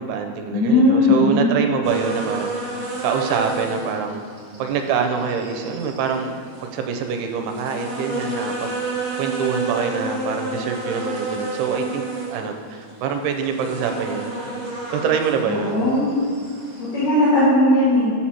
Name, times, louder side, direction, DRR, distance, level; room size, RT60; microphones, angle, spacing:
voice 1, 0.0-4.2 4.6-6.3 6.6-14.3 14.9-15.9, right 6 dB, 90° right, 4 dB, 2.7 m, -25 dB
voice 2, 0.5-1.6 15.5-16.1 16.8-18.2, left 1 dB, 70° left, -12 dB, 4.1 m, -17 dB
sound 1, 1.8-17.1, right 3 dB, 35° right, 2.2 m, -31 dB
9.6 x 4.3 x 6.1 m, 2.2 s
omnidirectional pair, 4.7 m